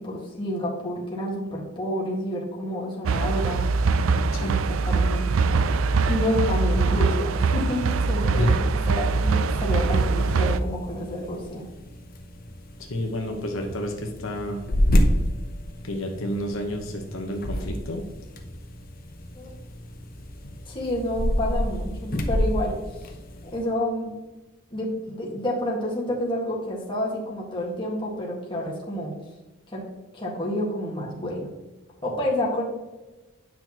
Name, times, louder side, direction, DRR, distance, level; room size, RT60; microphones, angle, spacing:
voice 1, 0.0-3.6 4.4-5.3 6.1-8.5 8.9-11.6 19.3-19.5 20.7-22.7 23.4-24.1 24.7-29.1 29.7-29.8 30.1-31.5 32.0-32.6, left 1 dB, 25° left, -3 dB, 1.8 m, -29 dB
sound 1, 3.1-10.6, right 4 dB, 75° right, 0.4 m, -22 dB
sound 2, 8.9-23.7, equal, 45° left, 0.9 m, -29 dB
voice 2, 12.8-14.6 15.8-18.0, left 1 dB, 75° left, 2 dB, 1.1 m, -30 dB
9.6 x 6.0 x 3.0 m, 1.1 s
head